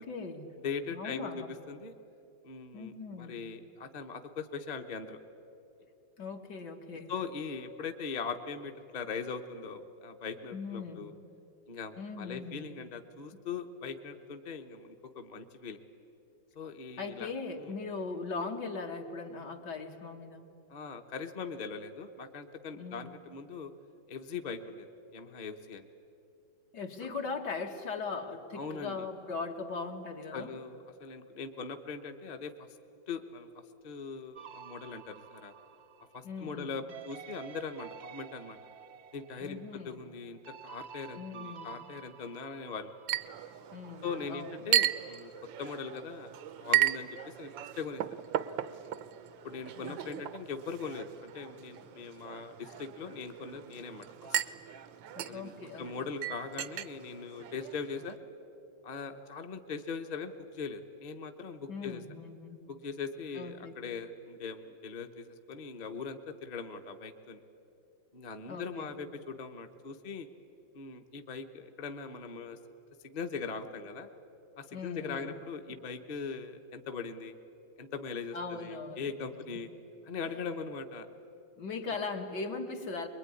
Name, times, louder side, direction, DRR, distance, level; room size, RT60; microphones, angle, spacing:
voice 1, 0.0-0.5 0.9-1.5 2.7-3.4 6.2-7.1 10.5-11.1 12.0-12.7 13.3-13.4 17.0-20.4 22.7-23.1 26.7-30.5 36.2-36.7 39.4-40.0 41.2-41.7 43.7-44.6 49.8-50.2 55.2-56.1 61.7-62.6 63.3-63.7 68.5-68.9 74.7-75.3 78.3-79.6 81.6-83.1, left 4 dB, 65° left, 3 dB, 2.3 m, -40 dB
voice 2, 0.6-1.9 2.4-5.2 7.1-11.1 11.7-15.8 16.5-17.3 17.6-17.7 20.7-23.7 24.1-25.9 28.5-29.1 30.3-32.7 33.1-33.5 33.8-35.5 36.1-38.6 39.1-39.6 39.8-42.9 44.0-45.3 45.6-46.3 46.6-48.0 49.4-54.4 55.3-58.2 58.8-62.0 62.7-67.4 68.1-70.3 70.7-72.6 73.0-74.1 74.6-77.3 77.8-79.7 80.1-81.1, left 5 dB, 30° left, 5 dB, 0.9 m, -40 dB
sound 1, 34.4-43.8, right 8 dB, 55° right, 0.8 m, -51 dB
Chink clink, 43.1-58.1, right 12 dB, 85° right, 1.5 m, -36 dB
24.5 x 22.0 x 9.8 m, 2.7 s
omnidirectional pair, 2.0 m